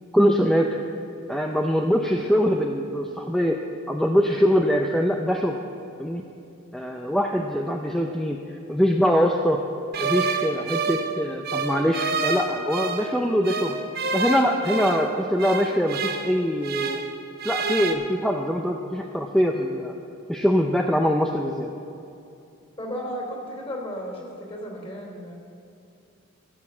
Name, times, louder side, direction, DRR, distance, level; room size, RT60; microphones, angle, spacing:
voice 1, 0.1-0.8 1.3-3.6 3.9-5.6 6.0-6.2 6.7-9.6 10.0-13.8 14.1-17.0 17.4-20.0 20.3-21.7, equal, ahead, 2 dB, 0.5 m, -23 dB
sound 1, 9.9-13.1 13.4-17.1 17.4-17.9, right 4 dB, 50° right, 0.9 m, -28 dB
voice 2, 22.8-25.3, equal, 25° left, 0 dB, 3.1 m, -34 dB
15.5 x 6.9 x 7.3 m, 2.7 s
head